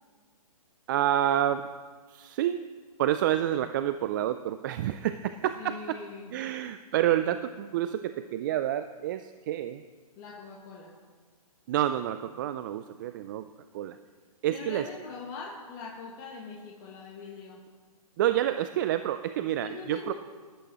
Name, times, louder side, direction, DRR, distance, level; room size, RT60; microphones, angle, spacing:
voice 1, 0.9-1.7 2.1-2.7 3.0-6.0 6.3-9.8 11.7-13.5 13.7-14.0 14.4-14.9 18.2-20.1, right 12 dB, 35° right, 11 dB, 0.4 m, -28 dB
voice 2, 5.6-6.3 10.2-10.9 14.5-17.6 19.6-20.1, left 4 dB, 30° left, -3 dB, 1.7 m, -42 dB
20.0 x 11.0 x 3.0 m, 1.5 s
hypercardioid pair, 135°, 19 cm